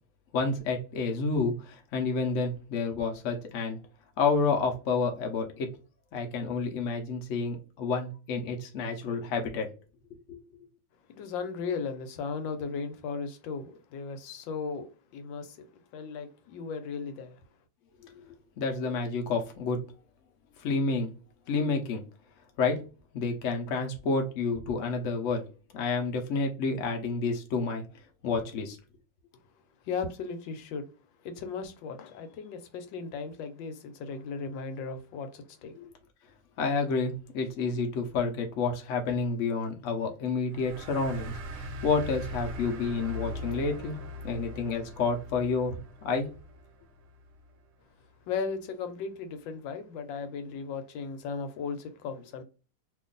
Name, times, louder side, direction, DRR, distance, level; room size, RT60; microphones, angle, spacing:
voice 1, 0.3-3.8 4.2-5.7 6.1-9.7 10.3-10.4 18.6-19.8 20.6-21.1 21.5-22.0 22.6-22.8 23.1-25.4 25.7-27.8 28.2-28.8 35.7-35.9 36.6-44.0 44.2-45.8 46.0-46.3, left 4 dB, 60° left, 0.8 m, -29 dB
voice 2, 11.1-15.7 15.9-17.4 29.8-30.9 31.2-35.7 48.3-52.4, left 5 dB, 85° left, 1.3 m, -36 dB
sound 1, 40.5-47.6, left 1 dB, 70° right, 1.0 m, -41 dB
2.9 x 2.5 x 3.8 m
omnidirectional pair, 2.0 m